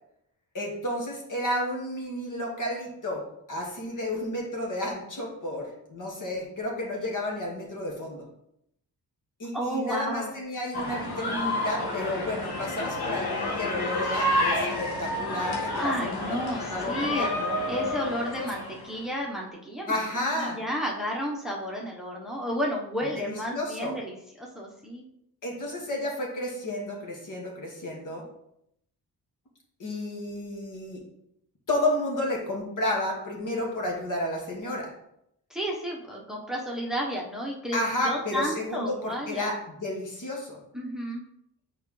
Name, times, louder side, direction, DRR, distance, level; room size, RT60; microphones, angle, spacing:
voice 1, 0.5-3.2 3.5-8.2 9.4-16.4 16.7-17.6 19.9-20.6 23.1-24.0 25.4-28.2 29.8-31.0 31.7-34.9 37.7-40.6, left 1 dB, 50° left, -2 dB, 2.0 m, -31 dB
voice 2, 9.5-10.3 15.7-17.4 17.7-20.0 20.3-25.0 35.5-39.5 40.7-41.2, equal, ahead, -2 dB, 1.2 m, -32 dB
sound 1, 10.7-19.0, left 1 dB, 70° left, 1.5 m, -30 dB
6.4 x 4.6 x 3.3 m, 0.77 s
cardioid pair, 75°, 39 cm